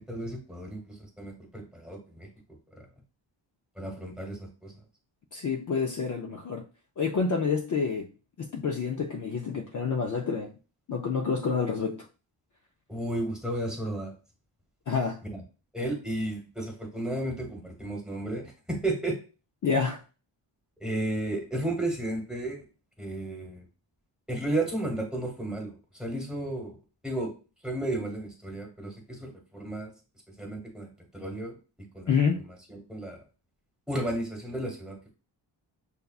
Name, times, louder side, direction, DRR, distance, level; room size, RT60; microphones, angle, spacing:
voice 1, 0.0-2.3 2.7-2.9 3.8-4.7 12.9-14.1 15.3-15.4 15.7-19.2 20.8-22.6 23.0-23.6 24.3-26.8 27.0-27.3 27.6-29.9 30.4-30.9 31.1-31.5 31.9-32.1 32.4-33.2 33.9-35.1, right 1 dB, ahead, 1.1 m, -33 dB
voice 2, 5.3-6.7 7.0-8.1 8.4-10.5 10.9-12.1 14.9-15.2 19.6-20.0 32.1-32.4, left 5 dB, 45° left, 0.4 m, -28 dB
6.7 x 2.3 x 2.3 m
wide cardioid pair, 150°, 47 cm